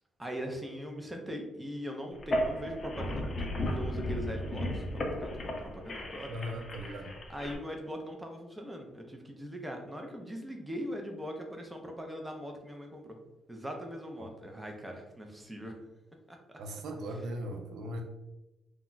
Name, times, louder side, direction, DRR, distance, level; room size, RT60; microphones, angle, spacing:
voice 1, 0.2-6.3 7.3-13.2 13.5-15.8 16.3-16.6, equal, 10° right, 2 dB, 0.5 m, -41 dB
sound 1, 2.1-7.6, equal, 40° left, 0.5 m, -35 dB
voice 2, 6.3-7.2 14.2-14.3 16.6-18.0, equal, 75° right, 3 dB, 0.4 m, -38 dB
2.2 x 2.1 x 3.8 m, 0.99 s
cardioid pair, 90°, 0 cm